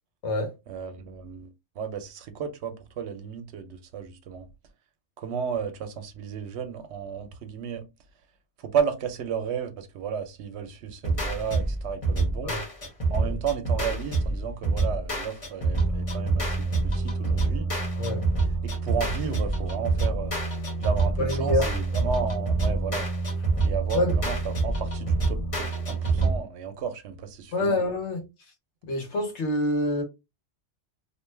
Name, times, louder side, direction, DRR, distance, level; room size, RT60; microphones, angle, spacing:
voice 1, 0.7-4.5 5.2-7.9 8.6-12.5 13.1-17.7 18.6-20.3 20.8-23.1 23.6-27.8, right 7 dB, 80° right, 0.9 m, -33 dB
sound 1, 11.0-26.4, right 3 dB, 30° left, 1.0 m, -26 dB
voice 2, 21.2-21.6 23.9-24.1 27.5-28.2 28.9-30.0, left 1 dB, 85° left, 1.2 m, -26 dB
2.5 x 2.2 x 3.1 m
omnidirectional pair, 1.1 m